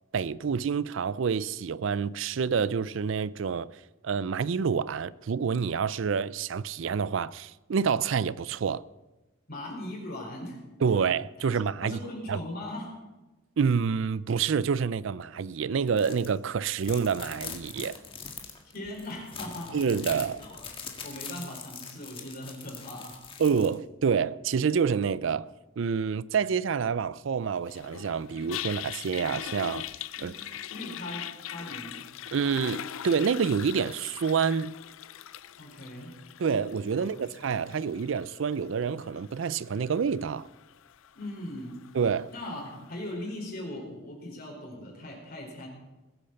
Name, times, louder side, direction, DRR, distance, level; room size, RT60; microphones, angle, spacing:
voice 1, 0.1-3.7 4.0-8.8 10.8-12.0 12.3-12.4 13.6-18.0 19.7-20.4 23.4-29.9 30.2-30.3 32.3-34.8 36.4-40.5 41.9-42.3, right 6 dB, 65° right, 0.4 m, -28 dB
voice 2, 9.5-10.6 11.4-11.5 11.8-12.9 18.7-19.8 20.4-20.7 21.0-23.2 30.1-30.4 30.7-32.0 35.6-36.1 36.9-37.2 41.1-41.8 42.3-45.7, left 1 dB, 45° left, 4.5 m, -39 dB
sound 1, 15.9-16.3 16.6-23.7, left 6 dB, 25° left, 1.7 m, -42 dB
Toilet flush, 27.7-42.9, left 10 dB, 75° left, 0.5 m, -42 dB
21.0 x 8.5 x 6.8 m
head